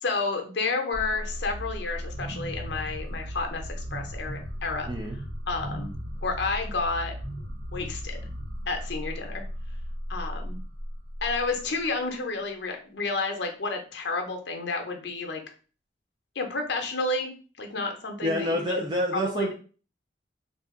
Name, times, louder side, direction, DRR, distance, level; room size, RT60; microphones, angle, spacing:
voice 1, 0.0-4.9 5.5-5.9 6.2-8.3 8.7-9.4 10.1-10.6 11.2-15.4 16.4-17.3 17.6-18.7 19.3-19.5, left 3 dB, 65° left, 4 dB, 0.7 m, -31 dB
sound 1, 0.9-11.8, equal, 75° right, 0.8 m, -36 dB
voice 2, 4.9-5.2 18.2-19.5, equal, 25° right, 1 dB, 0.3 m, -27 dB
2.6 x 2.4 x 3.6 m, 0.38 s
head